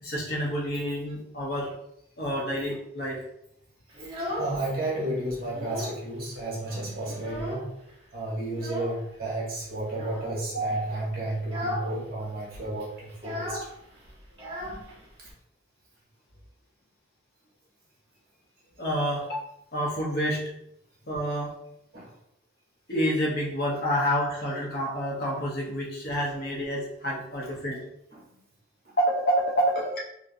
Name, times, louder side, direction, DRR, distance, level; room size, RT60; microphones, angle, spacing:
voice 1, 0.0-1.7 2.2-3.2 10.5-10.8 18.8-20.4 21.1-21.5 22.9-27.8 29.0-30.0, equal, 50° left, -3 dB, 0.8 m, -28 dB
Child speech kid speaking, 3.9-4.9 5.3-6.1 6.4-6.5 6.8-7.9 8.5-9.0 9.9-10.4 10.8-11.0 11.4-11.9 12.2-12.3 12.5-15.3, left 1 dB, 25° right, 0.9 m, -36 dB
voice 2, 4.1-7.7 8.1-13.7 15.2-15.3 21.9-22.1 28.1-28.3 28.8-28.9, right 1 dB, 50° right, -5 dB, 1.2 m, -32 dB
2.8 x 2.6 x 2.6 m, 0.76 s
head